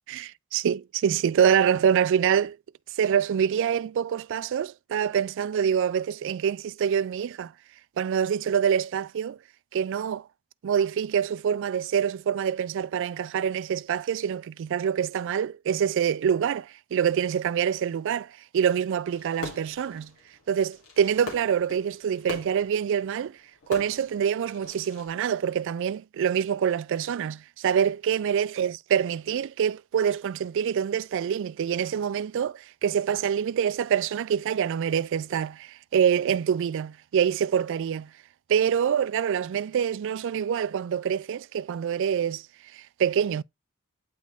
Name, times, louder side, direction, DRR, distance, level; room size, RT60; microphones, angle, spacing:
voice 1, 0.1-2.6 3.0-7.5 8.0-9.4 9.7-10.3 10.6-20.1 20.5-23.4 23.7-38.1 38.5-42.4 42.7-43.4, right 8 dB, 60° right, 0.3 m, -26 dB
Fireworks, 19.1-25.1, left 4 dB, 90° left, 2.9 m, -42 dB
9.3 x 4.0 x 3.5 m
head